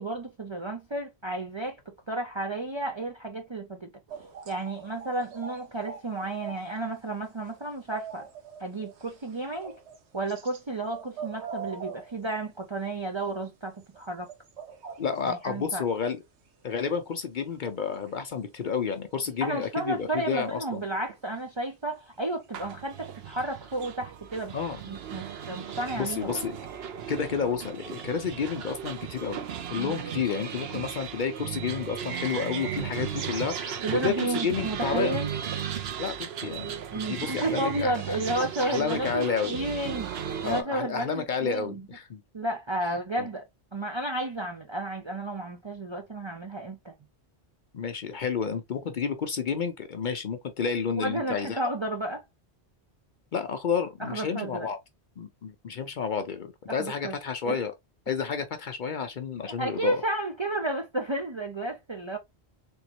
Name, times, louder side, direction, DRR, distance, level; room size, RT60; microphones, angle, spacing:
voice 1, 0.0-1.8 2.1-3.9 4.5-8.3 8.6-9.7 10.1-14.3 15.2-15.8 19.4-24.6 24.9-26.4 29.7-30.0 33.8-35.3 36.9-40.1 40.4-41.8 42.3-43.4 43.7-46.9 51.0-52.2 54.0-54.7 56.7-57.2 57.5-57.6 59.5-62.2, right 2 dB, 35° right, 0.5 m, -32 dB
sound 1, 4.1-6.8 7.1-10.6 10.9-13.1 13.4-13.5 13.7-15.3 16.7-18.7 19.3-19.4 20.0-21.3 21.6-21.7 21.9-22.2 22.4-22.5 22.8-23.2, right 6 dB, 85° right, 1.1 m, -44 dB
voice 2, 15.0-16.2 16.6-20.8 24.5-24.8 25.9-26.6 27.1-29.4 29.7-35.2 36.0-36.7 37.1-38.2 38.6-39.6 40.4-42.2 42.9-43.3 47.7-51.6 53.3-54.8 55.2-57.7 58.1-60.0, left 6 dB, 55° left, 0.6 m, -30 dB
sound 2, 22.5-40.6, right 8 dB, 70° right, 0.9 m, -36 dB
3.5 x 3.0 x 2.9 m
omnidirectional pair, 1.1 m